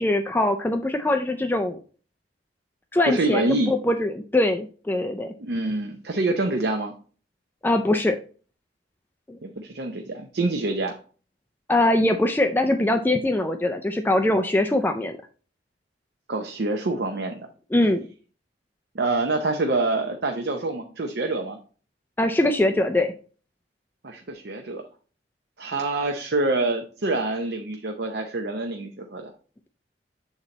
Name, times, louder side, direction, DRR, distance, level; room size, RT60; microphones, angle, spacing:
voice 1, 0.0-1.8 2.9-5.3 7.6-8.2 9.3-9.4 11.7-15.2 17.7-18.0 22.2-23.1, left 1 dB, 10° left, 6 dB, 0.4 m, -22 dB
voice 2, 3.1-3.7 5.4-6.9 9.4-11.0 16.3-17.5 18.9-21.6 24.0-24.8 25.6-29.3, right 2 dB, 65° right, 4 dB, 0.7 m, -26 dB
7.2 x 4.0 x 4.0 m, 0.40 s
head